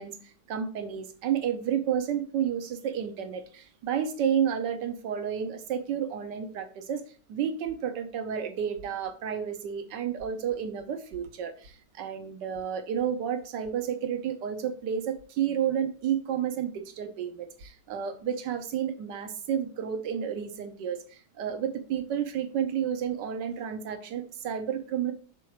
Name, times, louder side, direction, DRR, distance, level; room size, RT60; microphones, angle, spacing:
voice 1, 0.0-7.0 7.3-25.1, right 8 dB, 75° right, 8 dB, 1.5 m, -31 dB
6.1 x 4.6 x 4.8 m, 0.41 s
omnidirectional pair, 1.9 m